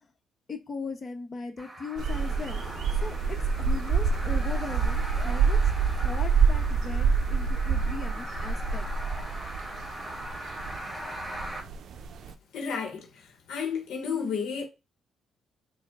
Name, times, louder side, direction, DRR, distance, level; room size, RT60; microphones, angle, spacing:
voice 1, 0.5-8.9, left 4 dB, 40° left, 0.9 m, -39 dB
sound 1, 1.6-11.6, equal, 15° right, 1.2 m, -40 dB
sound 2, 2.0-12.3, right 5 dB, 65° right, 0.4 m, -27 dB
voice 2, 12.5-14.7, left 6 dB, 80° left, 0.8 m, -32 dB
4.4 x 2.1 x 3.5 m
cardioid pair, 90°, 0 cm